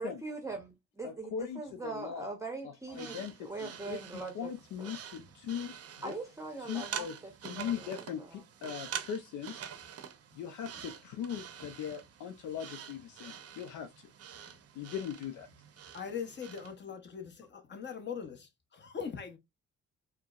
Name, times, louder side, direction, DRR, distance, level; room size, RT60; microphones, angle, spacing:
voice 1, 0.0-4.5 4.8-4.9 6.0-8.4, right 3 dB, 10° right, 0.7 m, -42 dB
voice 2, 1.0-2.3 2.9-5.7 6.0-6.1 6.6-7.2 7.4-9.7 10.3-14.1 14.8-15.5, left 8 dB, 75° left, 0.5 m, -40 dB
sound 1, 2.9-16.7, right 8 dB, 55° right, 0.6 m, -46 dB
voice 3, 15.9-19.4, left 7 dB, 35° left, 0.8 m, -41 dB
4.4 x 2.0 x 2.3 m
cardioid pair, 90°, 30 cm